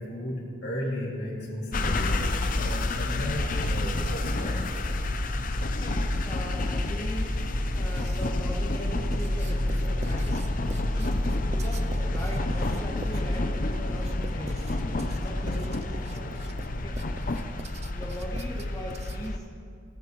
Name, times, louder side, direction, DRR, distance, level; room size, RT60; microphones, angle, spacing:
voice 1, 0.0-4.6, equal, 60° left, -4 dB, 2.6 m, -34 dB
sound 1, 1.7-19.4, left 1 dB, 45° left, 0.6 m, -29 dB
voice 2, 5.4-7.3 7.7-10.4 10.9-11.2 11.5-14.8 15.2-16.4 16.7-17.0 17.9-19.5, equal, 20° left, -1 dB, 1.4 m, -40 dB
Writing, 7.7-8.5 9.1-19.4, right 3 dB, 35° right, 0.4 m, -44 dB
16.5 x 9.4 x 3.1 m, 2.2 s
head